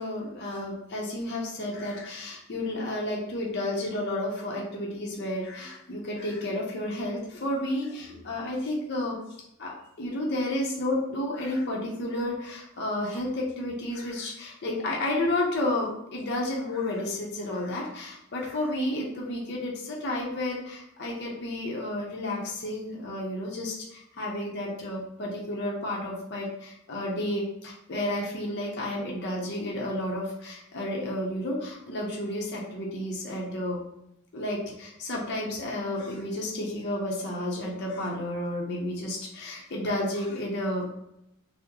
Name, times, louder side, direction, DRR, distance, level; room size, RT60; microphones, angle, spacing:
voice 1, 0.0-9.2 9.6-33.8 34.3-40.8, left 1 dB, 50° left, -2 dB, 0.6 m, -31 dB
3.6 x 2.0 x 2.9 m, 0.81 s
head